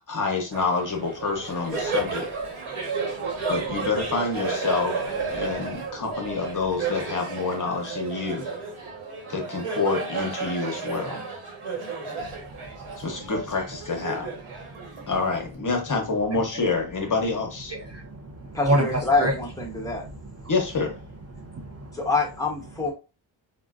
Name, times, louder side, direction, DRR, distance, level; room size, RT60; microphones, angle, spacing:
voice 1, 0.0-2.3 3.5-5.1 5.3-8.5 9.3-11.2 13.0-14.3 15.1-17.7 20.5-20.9, left 4 dB, 40° left, 2 dB, 0.8 m, -27 dB
Laughter, 0.5-15.5, right 4 dB, 80° right, 1.2 m, -32 dB
voice 2, 17.7-19.3 19.7-19.9 21.3-22.0, right 1 dB, 30° right, 0 dB, 0.5 m, -28 dB
voice 3, 18.5-20.0 21.9-22.9, left 3 dB, 5° left, -1 dB, 0.9 m, -25 dB
3.6 x 2.1 x 2.4 m, 0.31 s
wide cardioid pair, 120°, 49 cm